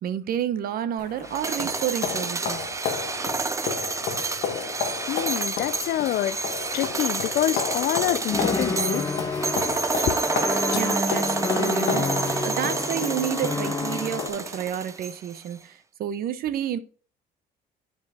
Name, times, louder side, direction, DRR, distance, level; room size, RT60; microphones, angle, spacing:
voice 1, 0.0-2.7 10.7-12.1 12.4-16.8, right 10 dB, 60° right, 0.8 m, -30 dB
sound 1, 1.0-14.7, left 7 dB, 80° left, 1.3 m, -33 dB
sound 2, 1.2-15.4, right 4 dB, 20° right, 0.5 m, -29 dB
voice 2, 2.9-10.3, left 14 dB, 65° left, 0.4 m, -29 dB
sound 3, 8.3-14.3, left 3 dB, 20° left, 0.7 m, -29 dB
8.3 x 5.2 x 3.5 m
cardioid pair, 110°, 17 cm